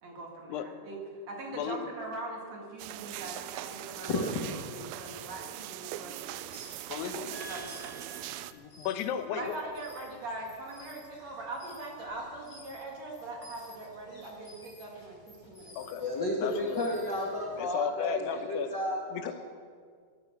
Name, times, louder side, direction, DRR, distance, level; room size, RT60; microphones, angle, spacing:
voice 1, 0.0-6.5 7.1-8.3 9.3-16.1, right 2 dB, 50° right, -1 dB, 2.8 m, -42 dB
voice 2, 1.5-1.9 6.9-7.3 8.5-9.6 15.8-16.0 16.4-16.9 17.6-18.7 19.1-19.3, left 8 dB, 85° left, 9 dB, 2.9 m, -34 dB
sound 1, 2.8-8.5, right 14 dB, 85° right, 2.1 m, -41 dB
sound 2, 6.3-17.6, left 1 dB, 20° left, 6.0 m, -55 dB
voice 3, 7.3-8.6 16.0-19.0, left 1 dB, 70° left, -3 dB, 1.0 m, -33 dB
18.0 x 10.5 x 7.1 m, 2.1 s
omnidirectional pair, 4.7 m